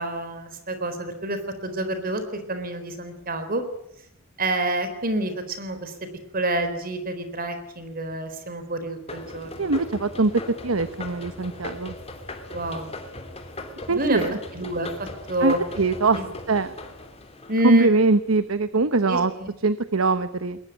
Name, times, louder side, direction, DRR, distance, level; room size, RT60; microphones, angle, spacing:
voice 1, 0.0-3.6 4.4-6.1 6.3-9.7 12.5-12.9 13.9-14.2 14.5-15.6 16.2-16.3 17.5-17.9 19.1-19.5, right 1 dB, 45° right, 9 dB, 4.0 m, -28 dB
sound 1, 9.1-18.2, left 2 dB, 30° left, 3.0 m, -38 dB
voice 2, 9.6-10.3 10.6-11.9 13.9-14.4 15.4-16.2 16.5-16.7 17.6-19.3 19.6-20.6, right 3 dB, 90° right, 13 dB, 1.0 m, -22 dB
21.5 x 20.5 x 9.2 m, 0.75 s
head